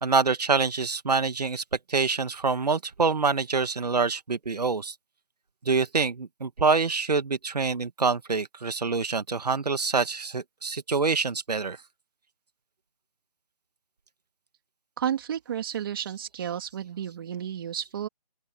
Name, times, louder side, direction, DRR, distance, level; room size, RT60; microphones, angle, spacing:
voice 1, 0.0-1.6 1.9-4.9 5.7-11.8, right 4 dB, 75° right, 2.0 m, -26 dB
voice 2, 15.0-18.1, right 9 dB, 35° right, 2.9 m, -32 dB
open air
figure-of-eight pair, 160°, 21 cm